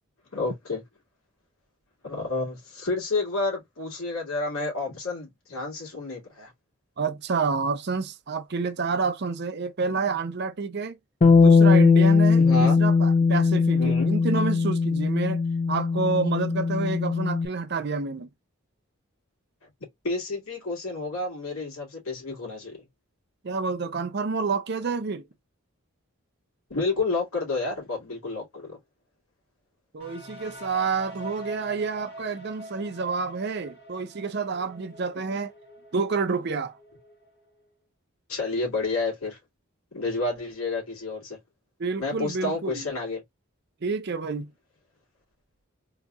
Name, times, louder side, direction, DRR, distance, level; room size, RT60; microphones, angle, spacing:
voice 1, 0.3-0.8 2.0-6.5 12.4-12.8 13.7-14.1 20.0-22.8 26.7-28.8 38.3-39.4 39.9-41.4 42.0-43.2, left 3 dB, 85° left, 2.2 m, -30 dB
voice 2, 7.0-11.0 11.4-15.4 15.7-18.3 23.4-25.3 29.9-35.5 35.9-36.7 41.8-42.9 43.8-44.5, right 4 dB, 50° right, 0.5 m, -29 dB
Bass guitar, 11.2-17.5, left 4 dB, 30° left, 0.5 m, -20 dB
sound 1, 30.0-37.7, right 1 dB, 50° left, 1.5 m, -45 dB
3.9 x 2.8 x 2.3 m
head